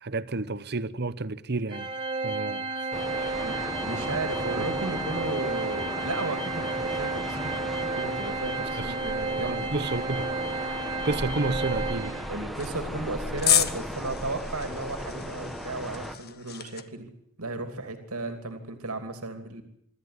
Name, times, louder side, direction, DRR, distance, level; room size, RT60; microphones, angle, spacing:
voice 1, 0.0-1.9 2.2-2.9 3.2-3.7 4.6-4.7 8.7-8.9 9.4-10.3 10.7-12.2, right 3 dB, 50° right, 1.0 m, -31 dB
Organ, 1.7-12.4, right 3 dB, 20° right, 2.2 m, -32 dB
sound 1, 2.9-16.2, equal, ahead, 1.5 m, -36 dB
voice 2, 3.4-9.7 12.3-17.1 17.4-19.6, right 2 dB, 80° right, 2.8 m, -35 dB
sound 2, 12.5-16.8, left 10 dB, 45° left, 1.5 m, -30 dB
25.5 x 13.5 x 9.8 m
head